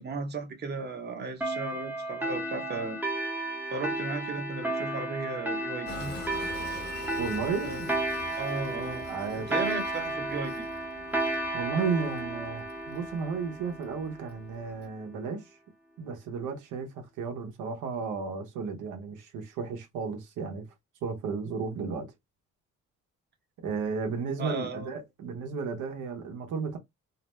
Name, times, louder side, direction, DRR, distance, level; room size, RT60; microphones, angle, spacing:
voice 1, 0.0-3.0 3.7-6.1 7.6-7.8 8.4-9.1 9.5-10.7 24.4-24.9, right 4 dB, 35° right, 0.8 m, -35 dB
sound 1, 1.4-14.5, right 1 dB, 5° right, 0.7 m, -33 dB
Train, 5.9-14.9, left 3 dB, 35° left, 1.0 m, -46 dB
voice 2, 7.2-7.9 9.0-9.5 11.5-15.6 16.0-20.6 21.0-22.1 23.6-26.8, right 5 dB, 80° right, 0.8 m, -33 dB
2.5 x 2.0 x 3.0 m
cardioid pair, 90°, 30 cm